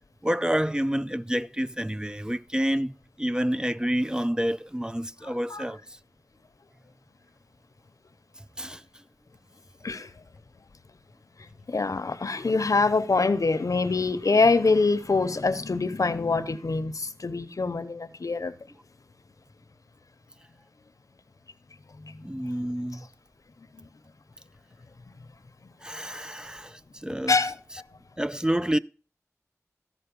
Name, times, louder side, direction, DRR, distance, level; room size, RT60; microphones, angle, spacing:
voice 1, 0.2-5.8 8.6-8.8 22.2-23.1 25.8-27.3 28.2-28.8, equal, 15° right, 0.4 m, -28 dB
voice 2, 5.2-5.6 9.8-10.1 11.7-18.5 22.0-22.3 23.8-23.9 27.3-27.6, left 3 dB, 85° left, 0.8 m, -25 dB
14.0 x 5.4 x 5.3 m
wide cardioid pair, 55°, 6 cm